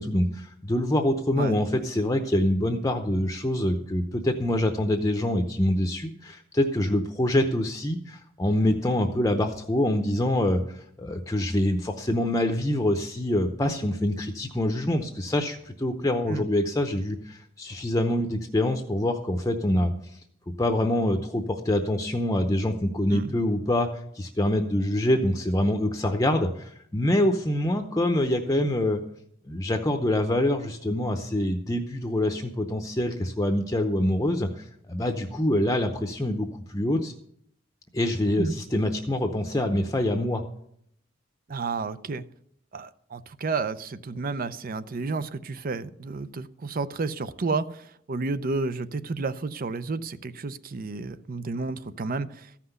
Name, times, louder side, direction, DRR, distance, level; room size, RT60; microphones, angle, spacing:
voice 1, 0.0-19.9 20.6-23.9 24.1-29.0 29.5-37.1 37.9-40.4, left 1 dB, 15° left, 5 dB, 0.7 m, -25 dB
voice 2, 41.5-42.3 42.7-52.6, right 3 dB, 45° right, 14 dB, 0.6 m, -31 dB
14.0 x 5.9 x 8.0 m, 0.70 s
head